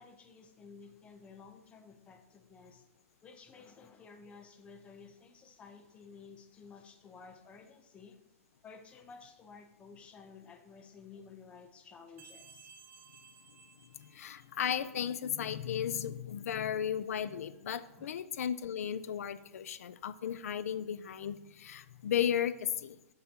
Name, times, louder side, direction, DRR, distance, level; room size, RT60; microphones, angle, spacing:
voice 1, 0.0-2.9 3.2-8.2 8.6-12.7 17.3-18.2, left 5 dB, 15° left, 6 dB, 0.6 m, -54 dB
sound 1, 12.2-14.7, right 5 dB, 25° right, 0.6 m, -57 dB
voice 2, 14.0-23.0, left 9 dB, 90° left, 15 dB, 0.4 m, -35 dB
7.6 x 7.1 x 2.8 m, 0.91 s
hypercardioid pair, 155°, 8 cm